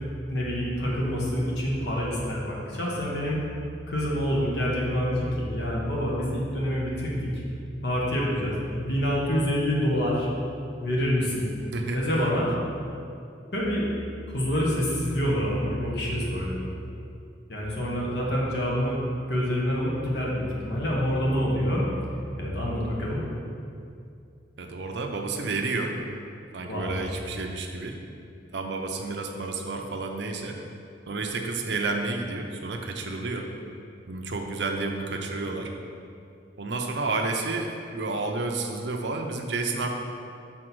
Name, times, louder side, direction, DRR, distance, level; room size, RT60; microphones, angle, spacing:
voice 1, 0.3-3.4 3.9-7.3 7.8-10.3 10.8-11.5 11.9-12.5 13.5-13.9 14.3-16.6 17.5-19.0 19.3-21.8 22.3-23.2 26.7-26.9, equal, 65° left, -4 dB, 1.4 m, -27 dB
voice 2, 24.6-25.9 26.5-28.0 28.5-30.6 31.1-33.5 34.1-35.7 36.6-39.9, right 3 dB, 65° right, 3 dB, 0.7 m, -30 dB
6.3 x 4.2 x 6.1 m, 2.5 s
head